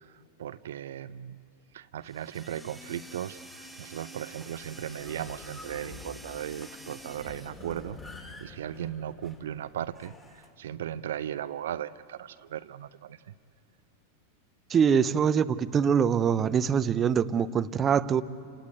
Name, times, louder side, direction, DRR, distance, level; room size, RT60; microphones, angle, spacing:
voice 1, 0.0-1.4 1.7-13.3, right 10 dB, 60° right, 0.5 m, -37 dB
sound 1, 2.0-7.9, right 1 dB, ahead, 2.3 m, -48 dB
sound 2, 4.3-10.5, left 3 dB, 15° left, 2.5 m, -48 dB
voice 2, 14.7-18.2, right 7 dB, 25° right, 0.7 m, -24 dB
29.0 x 18.0 x 9.5 m
figure-of-eight pair, 90°, 0 cm